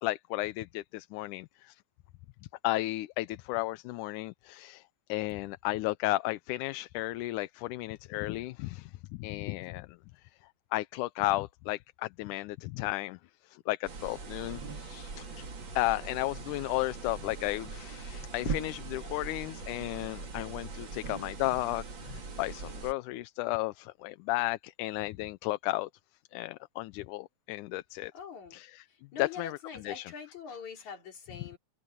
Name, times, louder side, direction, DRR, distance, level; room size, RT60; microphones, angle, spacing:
voice 1, 0.0-1.8 2.6-4.8 5.1-10.3 10.7-15.5 15.8-25.9 26.3-28.1 28.5-28.9 29.2-30.1 30.5-30.9 31.4-31.5, left 19 dB, 85° left, 2.1 m, -34 dB
sound 1, 13.8-22.9, right 4 dB, 40° right, 3.2 m, -41 dB
voice 2, 28.1-28.6 29.1-31.6, left 6 dB, 70° left, 5.1 m, -43 dB
omnidirectional pair, 3.5 m